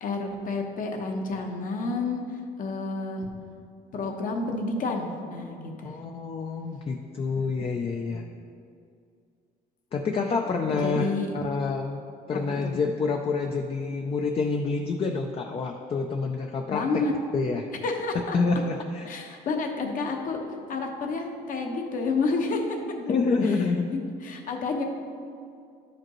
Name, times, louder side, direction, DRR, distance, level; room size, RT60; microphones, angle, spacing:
voice 1, 0.0-3.3 3.9-6.0 8.0-8.2 10.7-11.3 12.3-12.7 16.7-17.1 17.8-18.4 19.1-20.4 20.7-22.8 23.4-23.6 23.9-24.8, left 3 dB, 55° left, 2 dB, 1.0 m, -30 dB
voice 2, 5.8-8.2 9.9-11.1 11.3-12.0 12.3-17.0 17.3-17.7 18.3-19.1 23.0-23.9, left 4 dB, 35° left, 3 dB, 0.5 m, -27 dB
11.0 x 5.1 x 3.1 m, 2.4 s
cardioid pair, 110°, 17 cm